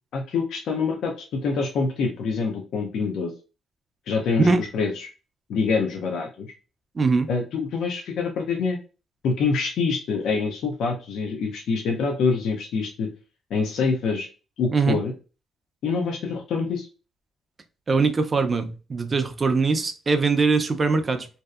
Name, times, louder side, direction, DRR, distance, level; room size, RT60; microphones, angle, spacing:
voice 1, 0.1-3.3 4.1-5.1 5.5-6.5 7.3-8.8 9.2-13.1 13.5-14.3 14.6-15.1 15.8-16.9, left 4 dB, 75° left, 1 dB, 0.4 m, -25 dB
voice 2, 7.0-7.3 14.7-15.0 17.9-21.3, right 4 dB, 35° right, 8 dB, 0.4 m, -22 dB
2.6 x 2.0 x 2.3 m, 0.33 s
cardioid pair, 90°, 0 cm